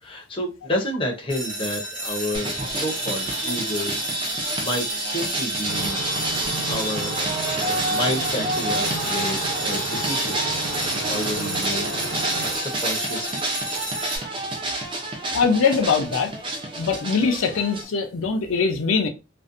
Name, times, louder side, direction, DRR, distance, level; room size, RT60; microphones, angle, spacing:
voice 1, 0.0-4.0 4.3-6.0 6.7-13.4, left 1 dB, 25° left, 0.5 m, -31 dB
sound 1, 1.3-14.2, right 1 dB, 40° right, 1.0 m, -32 dB
sound 2, 2.3-17.8, right 2 dB, 25° right, 0.4 m, -28 dB
sound 3, 5.7-12.6, right 2 dB, 90° right, 0.7 m, -33 dB
voice 2, 15.3-16.3 16.8-19.1, left 5 dB, 85° left, 0.5 m, -22 dB
2.5 x 2.1 x 2.4 m
head